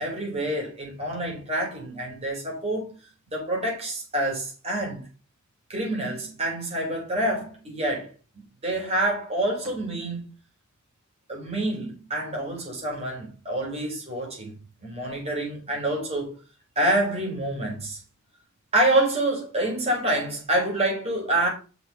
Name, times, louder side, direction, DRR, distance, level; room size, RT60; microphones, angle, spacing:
voice 1, 0.0-3.0 3.3-5.0 5.7-8.1 8.6-10.2 11.3-16.3 16.7-18.0 18.7-21.5, right 1 dB, 30° right, 5.1 m, -27 dB
6.8 x 6.4 x 6.0 m
head